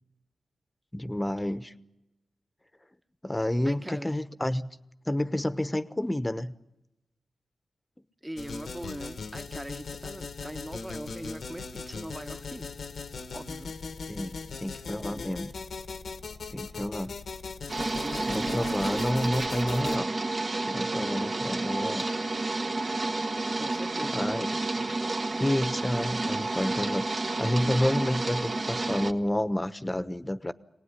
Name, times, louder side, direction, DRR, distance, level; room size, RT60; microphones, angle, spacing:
voice 1, 0.9-1.7 3.2-4.7 5.1-6.5 14.1-15.5 16.5-17.1 18.1-20.1 20.7-22.0 24.1-24.5 24.7-24.9 25.4-30.5, left 1 dB, 15° left, 13 dB, 1.1 m, -30 dB
voice 2, 3.6-4.2 8.2-12.7 13.3-13.7 15.0-15.3 17.9-18.8 23.5-24.2, right 1 dB, 15° right, 10 dB, 1.2 m, -41 dB
sound 1, 8.4-20.0, left 4 dB, 80° left, 1.5 m, -39 dB
sound 2, 17.7-29.1, right 2 dB, 50° right, 1.4 m, -30 dB
24.0 x 18.5 x 9.9 m, 0.96 s
cardioid pair, 55°, 0 cm